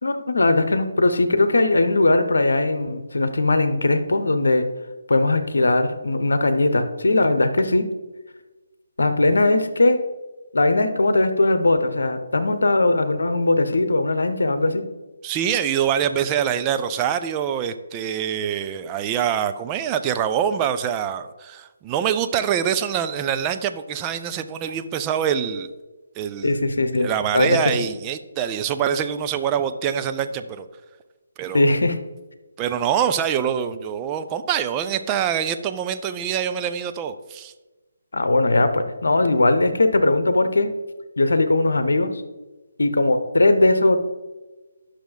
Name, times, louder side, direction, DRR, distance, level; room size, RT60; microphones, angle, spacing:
voice 1, 0.0-4.7 5.1-7.9 9.0-10.0 10.5-14.8 26.4-27.1 27.3-27.6 31.5-32.0 38.1-40.7 41.2-42.1 42.8-44.0, left 2 dB, 65° left, 9 dB, 1.0 m, -19 dB
voice 2, 15.2-25.7 26.2-26.7 27.0-30.7 31.4-31.8 32.6-37.5, right 9 dB, 20° right, 9 dB, 0.4 m, -25 dB
10.0 x 6.4 x 3.9 m, 1.2 s
figure-of-eight pair, 145°, 0 cm